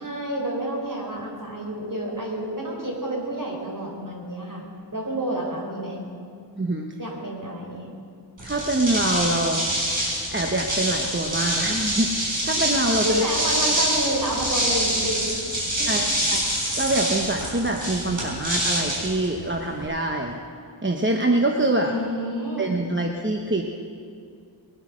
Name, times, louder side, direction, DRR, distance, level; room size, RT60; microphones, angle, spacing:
voice 1, 0.0-4.6 4.9-6.0 7.0-7.9 12.9-15.3 15.8-16.1 21.8-22.7, right 1 dB, 45° right, -2 dB, 4.2 m, -29 dB
voice 2, 6.6-6.9 8.4-9.7 10.3-13.2 15.9-16.4 16.8-20.4 20.8-21.9 22.6-23.6, right 2 dB, 25° right, 2 dB, 1.0 m, -25 dB
sound 1, 8.4-19.8, right 1 dB, 85° right, 5.3 m, -26 dB
21.0 x 9.6 x 6.3 m, 2.3 s
wide cardioid pair, 60°, 45 cm